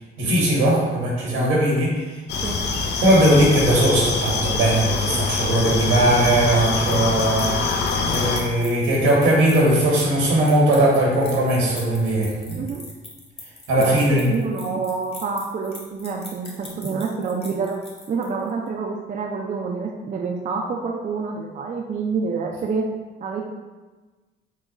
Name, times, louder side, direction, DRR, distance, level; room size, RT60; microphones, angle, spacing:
voice 1, 0.2-2.2 3.0-12.7 13.7-14.2, right 1 dB, 90° right, -3 dB, 1.3 m, -19 dB
sound 1, 2.3-8.4, left 4 dB, 60° left, 0.5 m, -24 dB
sound 2, 6.4-18.5, left 2 dB, 30° left, 1.0 m, -41 dB
voice 2, 13.7-23.5, right 4 dB, 40° right, 1 dB, 0.4 m, -28 dB
3.8 x 2.3 x 3.9 m, 1.3 s
cardioid pair, 90°, 20 cm